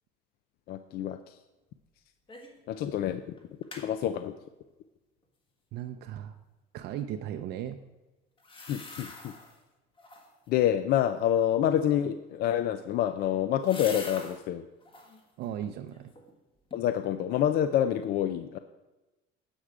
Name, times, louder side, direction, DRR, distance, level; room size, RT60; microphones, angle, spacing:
voice 1, 0.7-1.4 2.7-3.2 3.8-4.3 8.6-9.3 10.5-14.6 16.7-18.6, left 10 dB, 50° left, 10 dB, 0.4 m, -27 dB
sound 1, 2.3-2.6 2.9-3.0 3.4-3.9 8.4-9.6 10.0-10.5 12.5-14.4 14.8-15.2 15.7-16.4 16.7-16.8, left 3 dB, 25° left, 1.4 m, -45 dB
voice 2, 5.7-6.3 6.7-7.8 15.4-16.1, right 10 dB, 55° right, 7 dB, 0.5 m, -36 dB
9.9 x 7.9 x 4.9 m, 1.1 s
cardioid pair, 170°, 20 cm